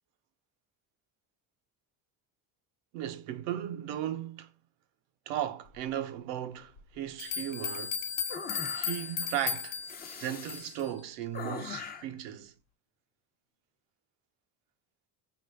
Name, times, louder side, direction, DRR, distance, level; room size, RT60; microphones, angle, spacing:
voice 1, 2.9-4.5 5.3-8.0 8.7-9.8 10.2-12.5, right 11 dB, 85° right, 0.8 m, -36 dB
sound 1, 6.8-6.9 7.2-10.9, left 7 dB, 70° left, 0.8 m, -36 dB
sound 2, 8.3-9.2 9.8-10.8 11.3-12.2, left 6 dB, 20° left, 0.3 m, -41 dB
5.2 x 2.5 x 3.3 m
supercardioid pair, 105°, 49 cm